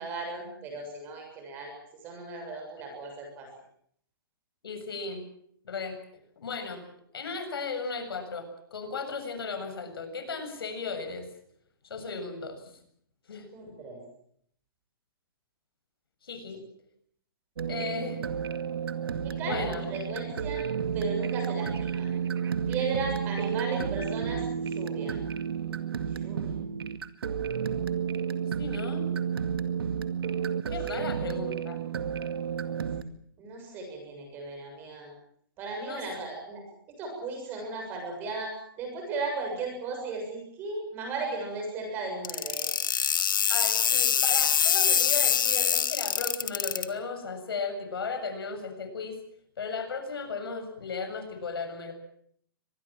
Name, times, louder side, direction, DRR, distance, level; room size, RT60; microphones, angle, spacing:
voice 1, 0.0-1.7 2.0-3.5 13.5-14.0 19.2-20.6 20.9-22.1 22.7-25.2 26.0-26.7 30.9-31.1 33.4-35.1 35.6-36.6 37.0-42.7, right 3 dB, 15° right, 3 dB, 7.1 m, -36 dB
voice 2, 4.6-5.2 5.6-6.0 6.4-6.8 7.1-11.3 11.8-12.6 13.3-13.5 16.2-16.6 17.7-18.3 19.4-19.8 28.6-29.1 30.7-31.8 35.9-36.0 43.5-49.2 49.6-51.9, left 4 dB, 80° left, 7 dB, 7.5 m, -35 dB
sound 1, 17.6-33.0, right 7 dB, 80° right, 2.1 m, -31 dB
sound 2, 42.2-46.8, left 8 dB, 60° left, 2.0 m, -24 dB
24.5 x 20.5 x 7.5 m, 0.67 s
hypercardioid pair, 180°, 12 cm